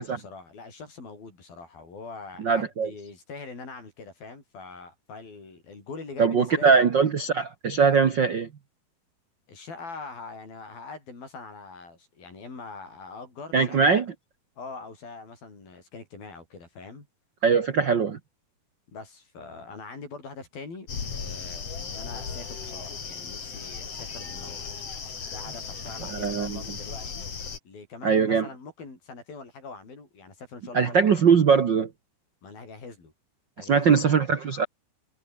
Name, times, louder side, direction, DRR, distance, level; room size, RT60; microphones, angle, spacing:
voice 1, 0.0-6.9 9.5-14.0 14.6-17.1 18.9-24.6 25.3-27.3 27.6-31.0 32.4-33.1 33.6-34.0, left 4 dB, 75° left, 9.5 m, -43 dB
voice 2, 2.4-2.9 6.2-8.5 13.5-14.0 17.4-18.2 26.1-26.6 28.0-28.5 30.7-31.9 33.6-34.6, right 6 dB, 65° right, 1.1 m, -21 dB
sound 1, 20.9-27.6, left 5 dB, 45° left, 4.1 m, -36 dB
omnidirectional pair, 4.2 m